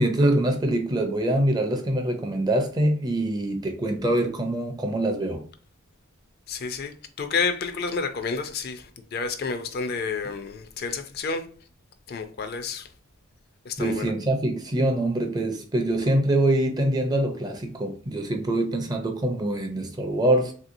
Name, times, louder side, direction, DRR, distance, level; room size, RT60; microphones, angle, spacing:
voice 1, 0.0-5.4 13.8-20.5, right 1 dB, 20° right, 0.4 m, -24 dB
voice 2, 6.5-11.5 12.1-12.9 13.6-14.1, left 5 dB, 50° left, 0.4 m, -30 dB
3.2 x 2.8 x 2.5 m
head